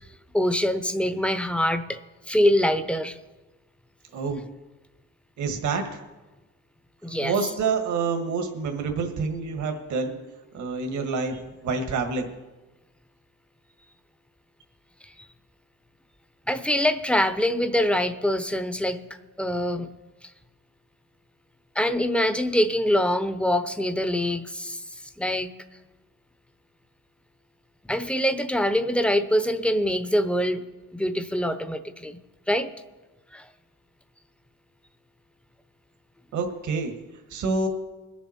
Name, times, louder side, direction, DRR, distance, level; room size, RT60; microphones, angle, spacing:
voice 1, 0.3-2.0 2.3-3.2 7.0-7.3 16.5-19.0 19.4-19.9 21.8-24.8 25.2-25.5 27.8-30.6 30.9-32.1 32.5-32.7 33.3-33.5, equal, 5° left, 10 dB, 0.9 m, -24 dB
voice 2, 4.1-4.4 5.4-6.0 7.2-10.2 10.5-12.3 36.3-37.0 37.3-37.7, right 4 dB, 70° right, 4 dB, 1.7 m, -27 dB
21.0 x 7.2 x 4.3 m, 1.2 s
cardioid pair, 90°, 30 cm